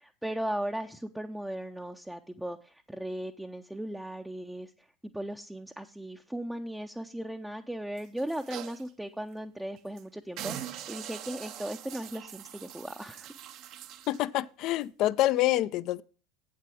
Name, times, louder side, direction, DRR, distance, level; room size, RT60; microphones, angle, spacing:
voice 1, 0.0-13.3, right 1 dB, 5° right, 0.6 m, -37 dB
sound 1, 8.0-8.9 9.3-9.4 9.8-10.0 10.4-14.2 14.8-14.9, right 11 dB, 50° right, 0.7 m, -43 dB
voice 2, 14.1-16.0, left 15 dB, 50° left, 0.4 m, -27 dB
8.3 x 7.7 x 4.9 m
figure-of-eight pair, 70°, 0 cm